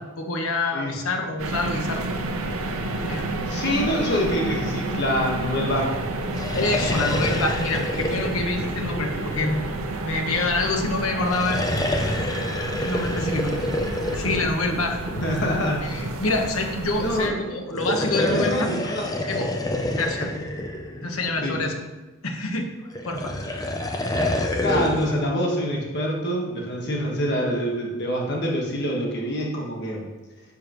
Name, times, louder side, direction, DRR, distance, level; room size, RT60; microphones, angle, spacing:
voice 1, 0.2-2.1 3.0-3.5 3.7-3.9 6.5-9.6 10.0-11.6 12.0-12.5 12.8-13.5 13.9-15.0 15.8-18.7 19.3-19.5 19.9-20.3 20.6-20.7 21.0-21.7 22.2-22.7 23.0-23.3 24.1-24.5, left 2 dB, 85° left, 3 dB, 1.3 m, -27 dB
sound 1, 1.4-17.3, right 2 dB, 85° right, 0.8 m, -30 dB
voice 2, 3.5-6.0 15.1-16.0 17.0-17.5 18.1-19.0 21.4-21.6 24.6-30.0, equal, 50° left, -1 dB, 1.5 m, -25 dB
sound 2, 6.2-9.8 11.1-15.5 17.6-21.6 22.9-25.2, left 1 dB, 15° left, 0.6 m, -28 dB
10.5 x 6.8 x 3.1 m, 1.2 s
head